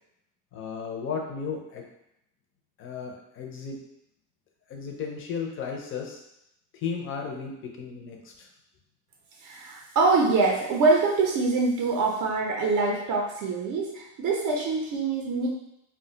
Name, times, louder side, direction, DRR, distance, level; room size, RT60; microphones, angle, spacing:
voice 1, 0.5-1.8 2.8-3.8 4.7-6.2 6.7-8.5, left 6 dB, 35° left, 1 dB, 0.4 m, -34 dB
voice 2, 9.4-15.5, right 3 dB, 50° right, -1 dB, 0.5 m, -24 dB
2.3 x 2.2 x 3.8 m, 0.82 s
cardioid pair, 165°, 39 cm